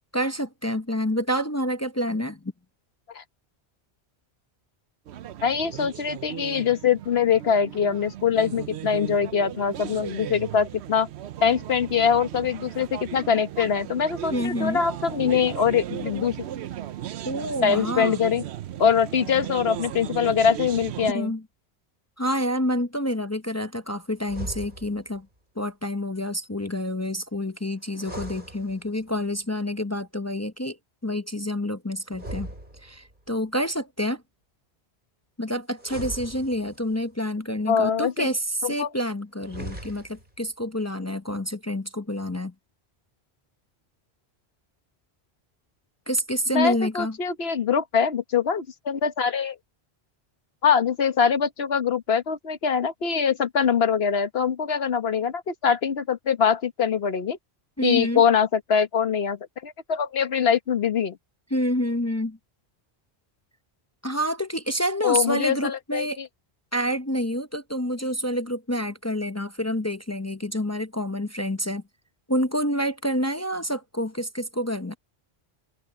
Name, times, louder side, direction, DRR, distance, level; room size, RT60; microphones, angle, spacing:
voice 1, 0.1-2.5 14.3-14.8 17.2-18.2 21.1-21.4 22.2-25.3 25.6-30.8 31.0-32.5 32.8-34.2 35.4-42.5 46.1-47.2 57.8-58.2 61.5-62.4 64.0-66.2 66.7-71.8 72.3-74.9, equal, 20° left, 0.6 m, -28 dB
sound 1, 5.1-21.1, right 12 dB, 85° right, 0.9 m, -36 dB
voice 2, 5.4-11.1 11.4-16.4 17.6-18.4 18.8-21.3 37.7-38.3 38.6-38.9 46.5-49.6 50.6-57.4 57.8-61.2 65.0-66.3, left 7 dB, 70° left, 1.4 m, -23 dB
sound 2, 24.2-25.2 27.9-29.2 32.1-33.3 35.8-37.0 39.4-40.4, right 1 dB, 50° right, 6.8 m, -39 dB
open air
omnidirectional pair, 1.1 m